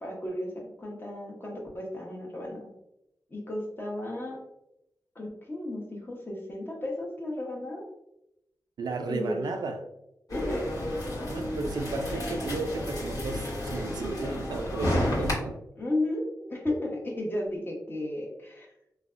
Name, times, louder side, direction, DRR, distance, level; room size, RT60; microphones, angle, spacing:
voice 1, 0.0-2.7 3.3-4.4 5.1-7.8 9.1-9.4 10.3-10.6 15.8-18.7, left 1 dB, 30° left, -2 dB, 0.9 m, -34 dB
voice 2, 8.8-9.8 11.3-15.6, right 3 dB, 80° right, 5 dB, 0.3 m, -34 dB
sound 1, 10.3-15.3, left 1 dB, 60° left, 1.0 m, -31 dB
3.2 x 2.1 x 2.4 m, 0.85 s
cardioid pair, 50°, 7 cm